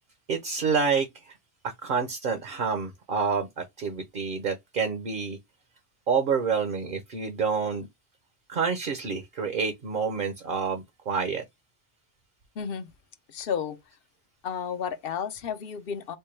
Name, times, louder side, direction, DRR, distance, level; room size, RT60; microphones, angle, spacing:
voice 1, 0.3-1.1 1.6-5.4 6.1-7.9 8.5-11.4, right 5 dB, 55° right, 0.8 m, -28 dB
voice 2, 12.6-12.9 13.3-13.8 14.4-16.2, left 7 dB, 60° left, 0.8 m, -32 dB
4.5 x 2.1 x 3.2 m
omnidirectional pair, 1.1 m